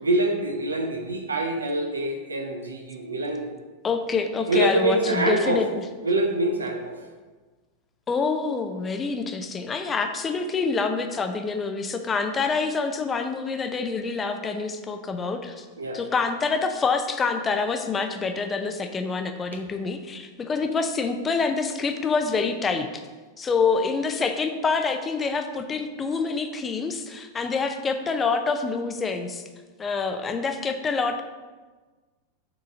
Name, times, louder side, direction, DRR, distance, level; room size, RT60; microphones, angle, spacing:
voice 1, 0.0-3.5 4.5-5.6 6.0-7.0 15.8-16.0, right 1 dB, 75° right, 4 dB, 0.8 m, -25 dB
voice 2, 3.8-5.7 8.1-15.7 15.9-23.0 23.4-29.4 29.8-31.2, left 4 dB, 20° left, 7 dB, 0.5 m, -26 dB
6.8 x 3.8 x 4.8 m, 1.3 s
figure-of-eight pair, 90°, 0 cm